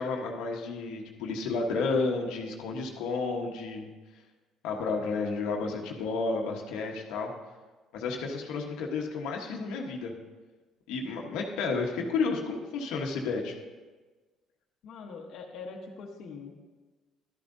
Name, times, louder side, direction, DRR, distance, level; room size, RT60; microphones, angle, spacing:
voice 1, 0.0-3.9 4.6-7.3 7.9-10.1 10.9-13.5, left 4 dB, 85° left, 1 dB, 1.1 m, -31 dB
voice 2, 14.8-16.6, left 4 dB, 65° left, 1 dB, 1.1 m, -43 dB
12.0 x 10.5 x 2.7 m, 1.3 s
cardioid pair, 125°, 0 cm